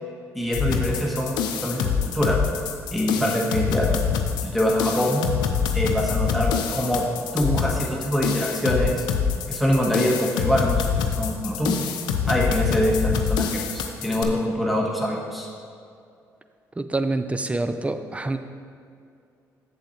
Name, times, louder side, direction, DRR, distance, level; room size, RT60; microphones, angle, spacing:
voice 1, 0.3-2.4 2.9-3.9 4.4-5.2 5.7-7.1 7.3-9.0 9.5-11.8 12.3-15.5, equal, ahead, -2 dB, 1.5 m, -24 dB
sound 1, 0.5-14.2, left 7 dB, 90° left, 0.6 m, -25 dB
voice 2, 16.8-18.4, right 2 dB, 20° right, 9 dB, 0.6 m, -26 dB
7.6 x 7.1 x 4.4 m, 2.4 s
supercardioid pair, 60°, 7 cm